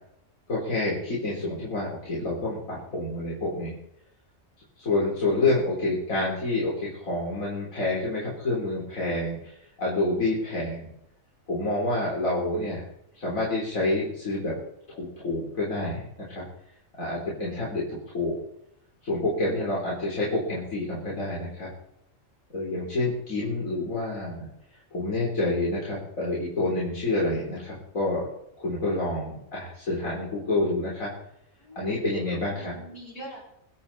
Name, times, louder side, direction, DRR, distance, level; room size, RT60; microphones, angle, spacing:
voice 1, 0.5-3.7 4.8-9.5 9.8-10.9 11.5-12.8 13.1-14.5 14.9-16.4 17.0-18.4 19.0-21.7 22.5-24.5 24.9-28.3 28.6-31.1 31.8-32.7, left 2 dB, 80° left, -6 dB, 4.3 m, -28 dB
voice 2, 31.6-33.4, right 1 dB, 65° left, -4 dB, 7.0 m, -44 dB
24.5 x 8.5 x 4.3 m, 0.77 s
omnidirectional pair, 1.4 m